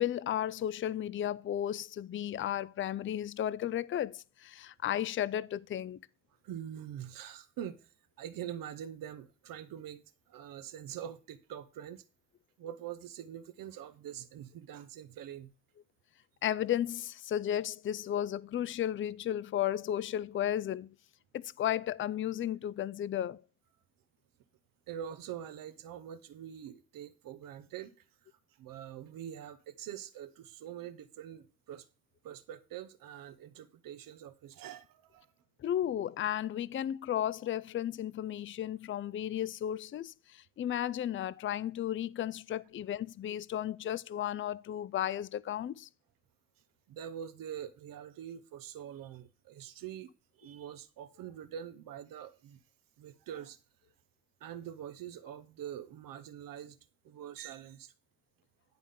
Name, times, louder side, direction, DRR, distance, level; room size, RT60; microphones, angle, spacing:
voice 1, 0.0-6.0 16.4-20.9 21.3-23.4 35.6-45.9, left 11 dB, 40° left, 0.4 m, -34 dB
voice 2, 6.4-7.9 8.2-10.0 10.3-12.0 12.6-15.5 24.9-27.9 28.6-31.9 32.2-35.3 46.9-50.1 50.4-52.6 53.0-53.6 54.4-56.8 57.0-57.9, right 10 dB, 85° right, 0.7 m, -44 dB
10.5 x 3.5 x 5.5 m
cardioid pair, 60°, 33 cm